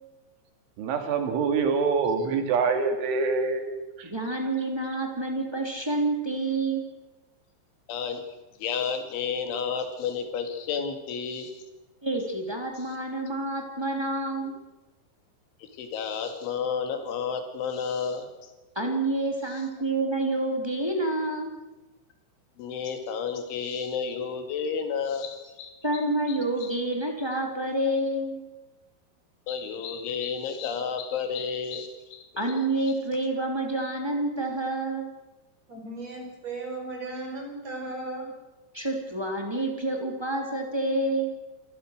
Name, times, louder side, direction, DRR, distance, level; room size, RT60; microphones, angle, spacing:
voice 1, 0.8-3.6 4.0-4.1, right 5 dB, 80° right, 6 dB, 4.8 m, -25 dB
voice 2, 4.0-6.8 12.0-14.6 18.7-21.5 25.8-28.4 32.4-35.1 38.7-41.3, right 2 dB, 5° right, 1 dB, 2.1 m, -28 dB
voice 3, 7.9-8.2 8.6-11.5 15.6-18.3 22.6-25.8 26.3-26.7 29.5-32.2, left 6 dB, 80° left, 6 dB, 4.6 m, -31 dB
voice 4, 35.7-38.3, right 2 dB, 35° right, 1 dB, 6.2 m, -36 dB
28.0 x 15.0 x 6.5 m, 1.1 s
omnidirectional pair, 5.4 m